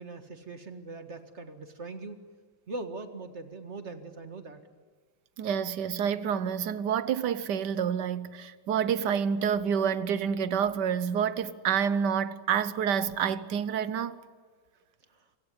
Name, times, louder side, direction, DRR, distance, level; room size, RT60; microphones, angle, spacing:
voice 1, 0.0-2.2 2.7-4.6 15.1-15.3, right 3 dB, 35° right, 1.9 m, -41 dB
voice 2, 5.4-14.2, right 8 dB, 65° right, 1.5 m, -28 dB
26.5 x 17.0 x 9.9 m
omnidirectional pair, 2.1 m